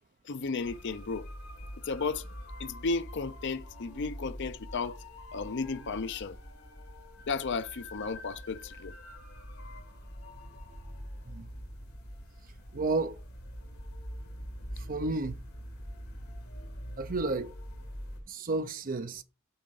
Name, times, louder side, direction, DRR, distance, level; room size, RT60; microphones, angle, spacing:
voice 1, 0.2-1.3 1.8-2.3 2.6-5.0 5.3-6.4 7.3-9.0, left 4 dB, 55° left, 0.5 m, -34 dB
sound 1, 0.6-18.2, equal, 80° left, 3.0 m, -44 dB
voice 2, 12.7-13.2 14.7-15.4 17.0-17.5 18.3-19.2, right 3 dB, 40° right, 0.7 m, -32 dB
8.6 x 3.9 x 5.4 m
head